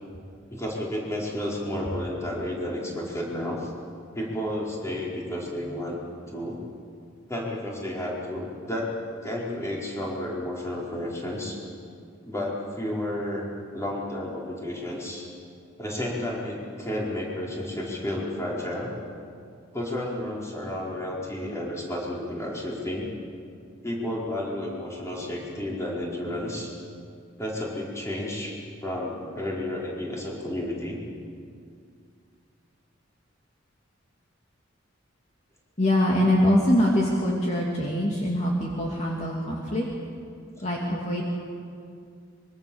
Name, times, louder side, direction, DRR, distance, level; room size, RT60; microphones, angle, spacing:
voice 1, 0.5-3.7 4.1-6.0 6.3-6.6 7.3-9.0 9.2-11.6 12.2-15.3 15.8-19.1 19.7-23.1 23.8-26.7 27.4-28.5 28.8-31.0, left 1 dB, 15° left, -4 dB, 4.9 m, -31 dB
voice 2, 35.8-39.9 40.6-41.2, left 1 dB, 35° left, -3 dB, 2.8 m, -23 dB
24.5 x 23.5 x 7.3 m, 2.3 s
head